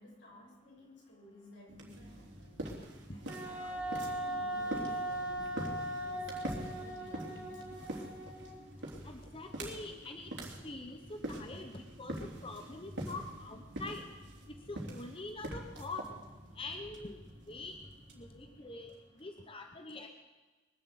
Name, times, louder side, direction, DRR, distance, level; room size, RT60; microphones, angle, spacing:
voice 1, 0.0-2.7 3.1-7.8, equal, 85° left, -3 dB, 7.0 m, -56 dB
sound 1, 1.7-19.2, right 1 dB, 90° right, 3.3 m, -45 dB
Wind instrument woodwind instrument, 3.3-8.7, right 1 dB, 10° right, 4.1 m, -39 dB
voice 2, 9.0-10.3 10.6-14.0 14.7-16.0 16.6-17.2 17.5-17.8 18.2-20.1, left 2 dB, 30° left, 5 dB, 1.0 m, -44 dB
22.5 x 7.7 x 8.2 m, 1.2 s
head